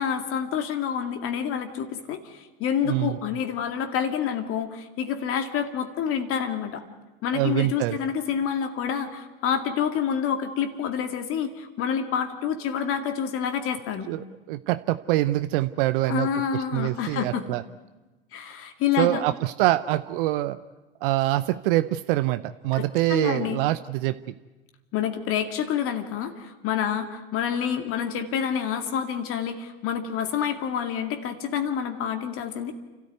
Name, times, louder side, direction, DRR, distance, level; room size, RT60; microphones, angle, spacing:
voice 1, 0.0-6.8 7.2-14.1 16.1-17.5 18.3-19.2 22.7-23.6 24.9-32.7, left 8 dB, 45° left, 7 dB, 2.2 m, -28 dB
voice 2, 2.9-3.2 7.3-8.0 14.1-17.6 19.0-20.6 21.0-24.2, right 16 dB, 60° right, 13 dB, 0.7 m, -25 dB
28.5 x 13.5 x 9.4 m, 1.2 s
hypercardioid pair, 95°, 30 cm